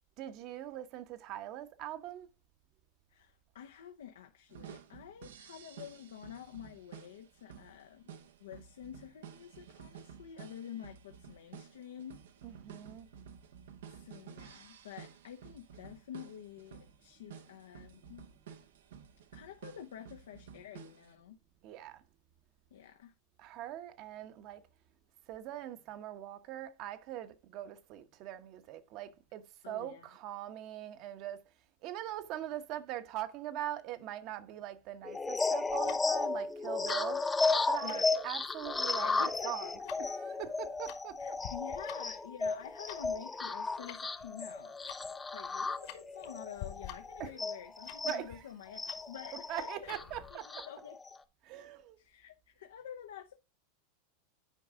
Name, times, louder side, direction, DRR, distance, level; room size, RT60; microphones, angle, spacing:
voice 1, 0.2-2.3 12.4-13.1 21.6-22.0 23.4-24.6 25.3-31.4 31.8-37.3 37.7-39.7 40.0-41.4 47.2-47.3 48.0-48.4 49.5-50.7 51.4-52.0, right 12 dB, 50° right, 0.9 m, -42 dB
voice 2, 3.1-8.1 8.4-12.2 13.9-18.3 19.3-21.4 22.7-23.1 29.6-30.1 37.8-38.1 39.0-39.7 41.2-50.0 50.3-51.0 52.0-53.4, left 9 dB, 85° left, 0.7 m, -49 dB
sound 1, 4.5-21.1, right 8 dB, 85° right, 0.8 m, -52 dB
sound 2, 35.0-48.2 48.7-51.2, left 3 dB, 15° left, 0.6 m, -34 dB
Tick-tock, 35.7-50.3, left 11 dB, 65° left, 1.5 m, -51 dB
9.2 x 4.8 x 3.6 m
hypercardioid pair, 115°, 0 cm